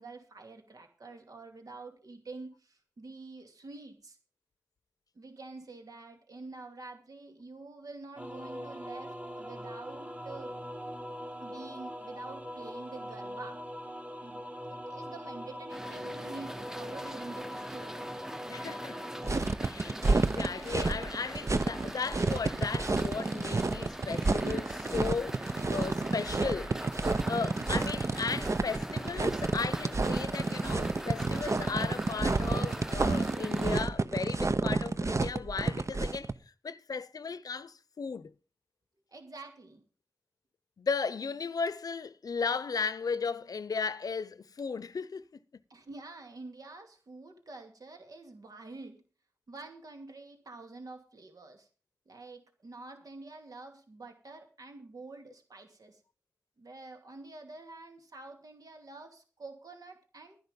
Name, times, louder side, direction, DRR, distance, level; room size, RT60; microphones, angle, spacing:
voice 1, 0.0-4.2 5.1-10.6 11.4-13.6 14.2-18.0 39.1-39.8 45.7-49.0 49.5-51.7 52.1-56.0 56.6-60.4, right 3 dB, 80° right, 2.7 m, -47 dB
sound 1, 8.2-19.4, equal, 25° right, 2.1 m, -42 dB
sound 2, 15.7-33.8, equal, 5° right, 0.8 m, -42 dB
voice 2, 18.5-19.0 19.6-25.4 25.7-26.7 27.2-36.3 36.6-38.3 40.8-45.4, left 5 dB, 90° left, 0.7 m, -36 dB
sound 3, 19.2-36.3, right 3 dB, 55° right, 0.8 m, -30 dB
12.0 x 10.5 x 5.2 m
cardioid pair, 40°, 6 cm